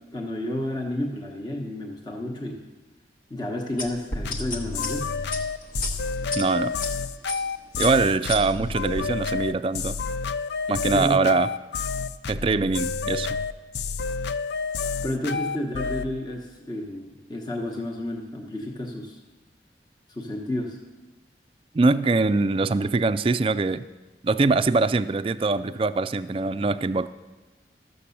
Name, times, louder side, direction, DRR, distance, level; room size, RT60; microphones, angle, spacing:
voice 1, 0.1-2.6 3.3-5.2 10.9-11.2 15.0-19.2 20.1-20.8, left 1 dB, 25° left, 0 dB, 1.0 m, -31 dB
sound 1, 3.8-6.9 7.3-7.5 7.8-9.1, left 2 dB, 50° left, 1.2 m, -32 dB
sound 2, 4.2-16.1, left 5 dB, 75° left, 0.4 m, -29 dB
voice 2, 6.4-6.7 7.8-10.0 10.7-11.5 12.3-13.4 21.7-23.9 24.2-27.1, right 3 dB, 30° right, 12 dB, 0.3 m, -23 dB
13.5 x 6.7 x 7.0 m, 1.2 s
head